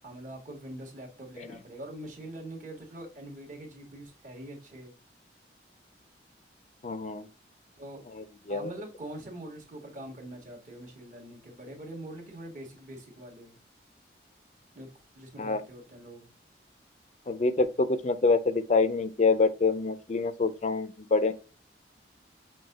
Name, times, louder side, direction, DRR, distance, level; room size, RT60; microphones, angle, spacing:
voice 1, 0.0-4.9 7.8-8.0 8.5-13.5 14.7-14.9 15.1-16.3, right 1 dB, 45° right, 1.6 m, -43 dB
voice 2, 6.8-7.3 8.1-8.7 15.4-15.6 17.3-21.3, left 3 dB, 40° left, 0.4 m, -26 dB
6.2 x 2.2 x 3.8 m
head